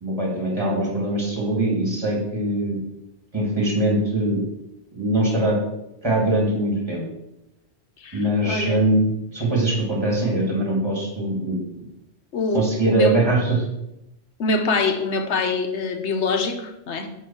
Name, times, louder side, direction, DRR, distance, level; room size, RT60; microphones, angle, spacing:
voice 1, 0.0-2.8 3.3-4.4 4.9-5.6 6.0-7.0 8.1-11.6 12.5-13.6, right 1 dB, 25° right, -2 dB, 2.4 m, -22 dB
voice 2, 8.0-8.8 12.3-13.2 14.4-17.1, left 3 dB, 85° left, 6 dB, 1.3 m, -24 dB
8.8 x 3.8 x 7.1 m, 0.87 s
omnidirectional pair, 1.1 m